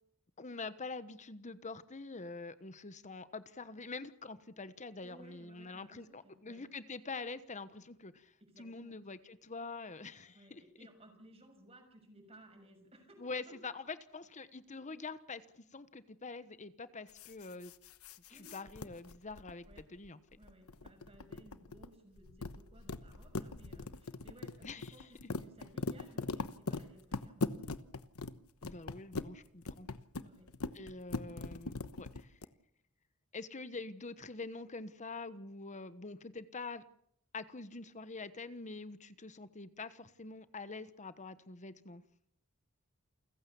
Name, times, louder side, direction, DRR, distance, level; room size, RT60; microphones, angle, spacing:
voice 1, 0.4-10.6 13.2-17.7 18.3-20.2 24.6-25.1 28.6-29.9 30.7-32.4 33.3-36.8 37.3-42.0, left 3 dB, 35° left, 13 dB, 1.2 m, -45 dB
voice 2, 5.0-6.6 8.4-9.0 10.3-13.3 18.3-18.5 19.6-19.8 20.4-27.5 30.1-30.5, right 1 dB, 30° right, 4 dB, 6.8 m, -59 dB
sound 1, 17.1-20.1 20.3-21.9 22.2-28.3 28.6-29.3 29.6-32.4, left 3 dB, 80° left, 1.1 m, -40 dB
29.0 x 15.5 x 7.1 m, 0.68 s
head